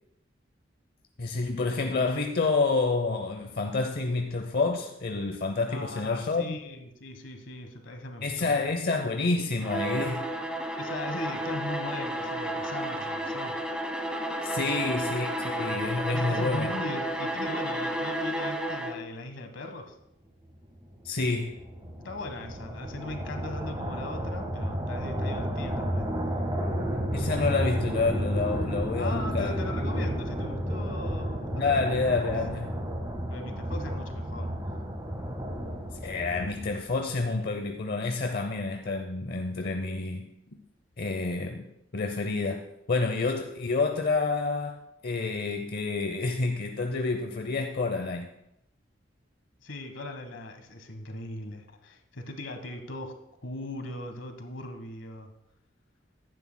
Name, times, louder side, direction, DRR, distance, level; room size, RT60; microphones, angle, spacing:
voice 1, 1.2-6.6 8.2-10.2 14.4-16.7 21.0-21.6 27.1-29.6 31.5-32.7 36.0-40.2 41.0-41.7 41.9-42.6 42.9-48.3, left 3 dB, 55° left, 5 dB, 0.7 m, -28 dB
voice 2, 5.7-8.5 10.8-13.6 14.6-14.8 16.1-20.0 22.0-26.1 29.0-31.9 33.3-34.5 49.6-55.3, left 1 dB, 75° left, 6 dB, 1.3 m, -39 dB
Bowed string instrument, 9.6-19.1, right 1 dB, 5° right, 1.1 m, -32 dB
sound 1, 20.8-37.0, equal, 20° right, 1.4 m, -32 dB
15.0 x 11.0 x 2.2 m, 0.82 s
head